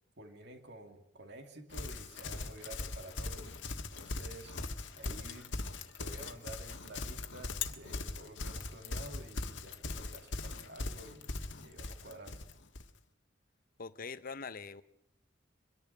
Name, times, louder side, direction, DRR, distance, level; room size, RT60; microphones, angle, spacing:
voice 1, 0.2-3.5 3.9-4.6 5.0-5.5 6.0-12.4, right 1 dB, 65° right, 2.5 m, -51 dB
Livestock farm animals working animals, 1.7-12.9, left 3 dB, 75° left, 1.5 m, -40 dB
voice 2, 13.8-14.8, left 4 dB, 50° left, 0.8 m, -43 dB
24.0 x 11.0 x 9.9 m
head